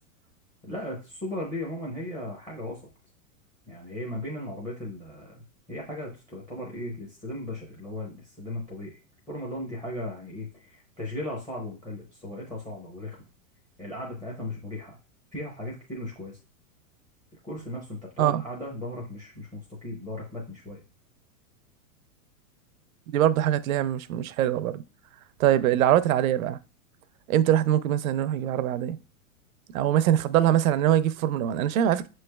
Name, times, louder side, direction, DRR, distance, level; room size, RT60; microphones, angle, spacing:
voice 1, 0.6-2.9 3.7-9.0 9.3-13.2 13.8-15.0 15.3-16.4 17.4-20.8, left 1 dB, 10° left, 0.6 m, -37 dB
voice 2, 23.1-24.8 25.4-26.6 27.3-29.0 29.7-32.1, right 11 dB, 70° right, 0.5 m, -23 dB
6.6 x 3.2 x 2.2 m
supercardioid pair, 155°, 43 cm